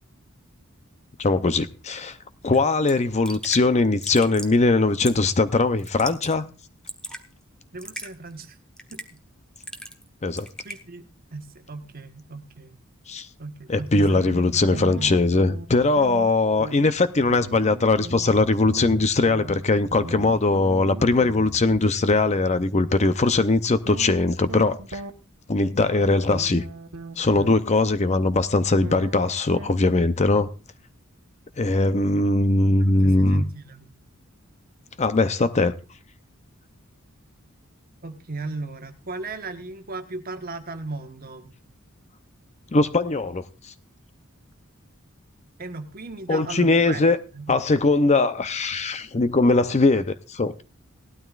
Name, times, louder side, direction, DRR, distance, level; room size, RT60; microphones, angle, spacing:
voice 1, 1.2-2.2 2.4-6.5 10.2-10.5 13.1-13.3 13.7-25.0 25.5-26.6 27.2-30.5 31.6-33.4 35.0-35.7 42.7-43.4 46.3-47.2 47.5-50.5, left 3 dB, 30° left, 0.6 m, -20 dB
Raindrop / Drip, 2.5-2.6 2.9-3.0 3.2-3.6 4.0-4.6 5.0-5.3 5.8-6.3 6.6-7.2 7.8-8.1 8.8-9.2 9.6-10.1 10.4-10.8, equal, 5° left, 1.1 m, -37 dB
voice 2, 7.7-8.6 8.9-9.2 10.6-11.0 11.3-12.7 13.4-15.1 32.8-33.9 38.0-41.5 45.6-47.0 47.3-47.6, right 3 dB, 45° right, 1.3 m, -36 dB
sound 1, 14.1-15.7 16.0-21.8 23.9-25.1 26.3-27.6 28.8-30.3, right 3 dB, 80° right, 1.2 m, -39 dB
18.0 x 12.5 x 2.4 m
head